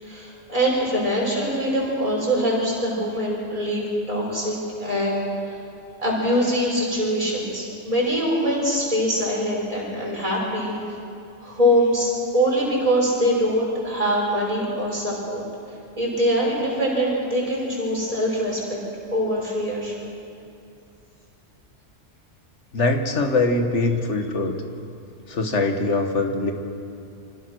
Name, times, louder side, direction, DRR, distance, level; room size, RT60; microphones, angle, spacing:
voice 1, 0.0-5.2 5.4-5.6 6.0-10.9 11.4-15.4 16.0-18.8 19.1-20.0, equal, 30° right, -5 dB, 6.2 m, -23 dB
voice 2, 22.7-24.5 25.3-26.5, left 3 dB, 75° left, 4 dB, 1.9 m, -22 dB
25.5 x 17.5 x 6.4 m, 2.6 s
omnidirectional pair, 1.2 m